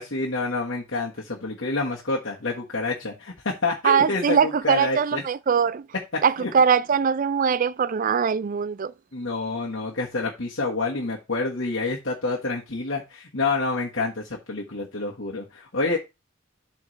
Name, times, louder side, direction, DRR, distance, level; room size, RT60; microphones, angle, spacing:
voice 1, 0.0-5.2 6.4-6.5 9.1-16.0, left 3 dB, 65° left, 1.6 m, -28 dB
voice 2, 3.8-5.9 6.2-8.9, right 6 dB, 40° right, 0.4 m, -21 dB
12.0 x 4.4 x 3.3 m
head